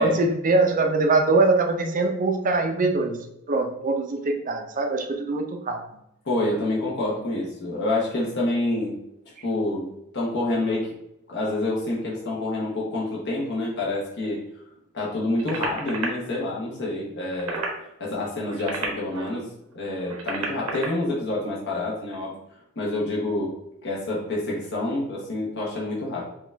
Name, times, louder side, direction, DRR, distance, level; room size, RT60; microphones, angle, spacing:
voice 1, 0.0-3.2 3.5-5.8, right 3 dB, 40° right, 4 dB, 0.5 m, -22 dB
voice 2, 6.2-8.9 9.4-10.9 11.3-14.4 14.9-17.7 18.0-22.3 22.8-23.5 23.8-26.2, left 2 dB, 55° left, -5 dB, 1.0 m, -27 dB
sound 1, 15.4-16.1 17.2-17.8 18.4-19.4 20.0-20.9 22.0-22.2, right 4 dB, 80° right, 1.0 m, -31 dB
5.0 x 2.4 x 3.3 m, 0.80 s
head